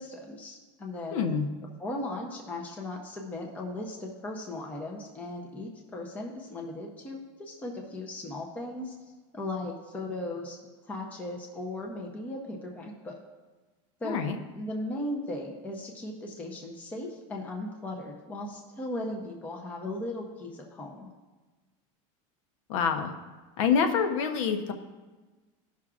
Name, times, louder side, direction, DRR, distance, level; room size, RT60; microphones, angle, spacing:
voice 1, 0.0-1.2 1.8-8.9 9.3-10.6 10.8-13.1 14.0-21.1, left 1 dB, 10° left, 0 dB, 0.6 m, -37 dB
voice 2, 1.1-1.5 14.0-14.3 22.7-23.1 23.6-24.7, left 6 dB, 75° left, 6 dB, 0.9 m, -26 dB
16.0 x 5.7 x 2.4 m, 1.3 s
supercardioid pair, 180°, 17 cm